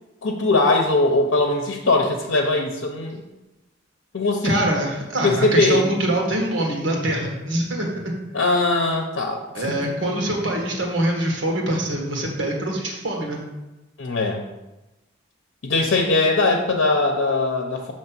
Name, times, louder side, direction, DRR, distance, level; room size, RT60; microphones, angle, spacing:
voice 1, 0.2-3.2 4.1-4.6 5.2-5.8 8.3-9.4 9.8-9.9 14.0-14.5 15.6-17.9, left 2 dB, 85° left, 2 dB, 0.7 m, -20 dB
voice 2, 4.4-8.1 9.5-13.4, right 1 dB, 75° right, 0 dB, 1.5 m, -24 dB
6.6 x 3.2 x 6.0 m, 1.0 s
head